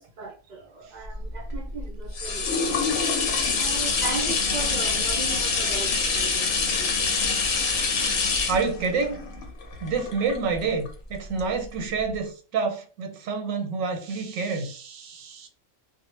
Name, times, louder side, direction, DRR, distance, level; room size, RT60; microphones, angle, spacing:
voice 1, 0.0-2.9 3.5-7.2, right 4 dB, 55° right, 0.5 m, -37 dB
sound 1, 1.1-10.9 11.4-11.5, left 4 dB, 70° left, 1.0 m, -25 dB
voice 2, 8.5-9.2 9.8-15.5, right 4 dB, 90° right, 1.0 m, -28 dB
2.2 x 2.1 x 3.0 m
omnidirectional pair, 1.3 m